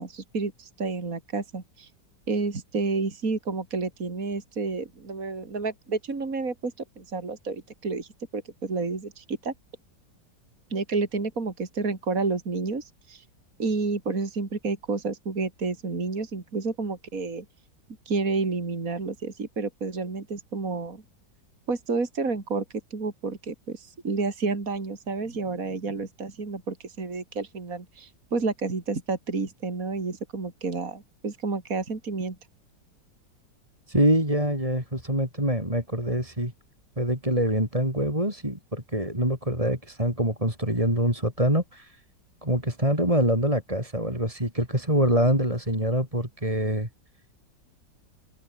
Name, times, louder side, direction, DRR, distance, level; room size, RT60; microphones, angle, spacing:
voice 1, 0.0-1.9 2.3-9.5 10.7-13.2 13.6-17.5 18.1-21.0 21.7-22.6 22.9-32.4, right 3 dB, 45° right, 3.6 m, -30 dB
voice 2, 33.9-36.5 37.0-42.0 42.4-46.9, right 1 dB, 15° right, 7.0 m, -25 dB
open air
omnidirectional pair, 2.0 m